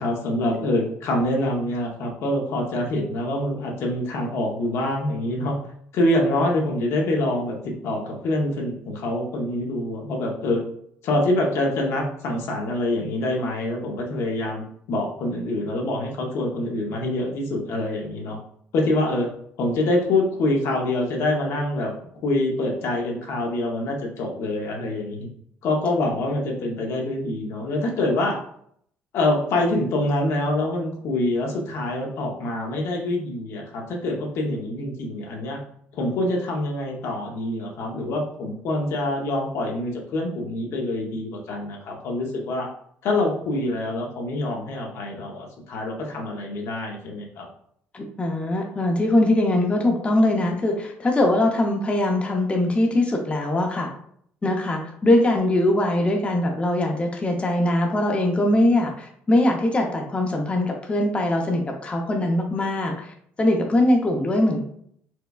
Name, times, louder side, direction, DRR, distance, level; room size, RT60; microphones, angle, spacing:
voice 1, 0.0-5.6 5.9-10.6 11.0-18.4 18.7-19.3 19.6-21.9 22.2-25.3 25.6-28.4 29.1-35.6 35.9-42.7 43.0-47.5, left 1 dB, 75° left, 0 dB, 0.8 m, -25 dB
voice 2, 47.9-53.9 54.4-64.6, left 1 dB, 25° left, 1 dB, 0.6 m, -22 dB
4.3 x 2.2 x 2.3 m, 0.66 s
cardioid pair, 85°, 5 cm